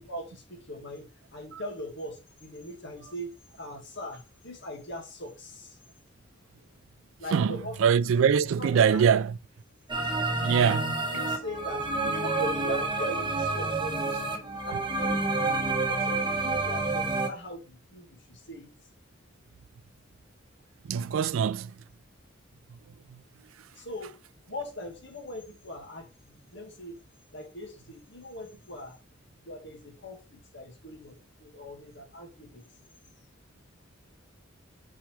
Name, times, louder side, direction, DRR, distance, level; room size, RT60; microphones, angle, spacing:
voice 1, 0.0-5.8 7.2-7.7 8.6-9.1 11.1-15.1 15.8-18.7 23.8-24.2 24.5-27.0 27.3-29.0 29.4-32.9, left 1 dB, 60° left, 2.2 m, -41 dB
voice 2, 7.3-9.4 10.4-11.1 14.7-14.8 20.8-21.8 22.7-22.8 23.1-23.2 23.6-23.7, right 7 dB, 70° right, 0.3 m, -24 dB
sound 1, 9.9-17.3, right 3 dB, 25° right, 1.1 m, -29 dB
6.1 x 4.8 x 3.4 m
head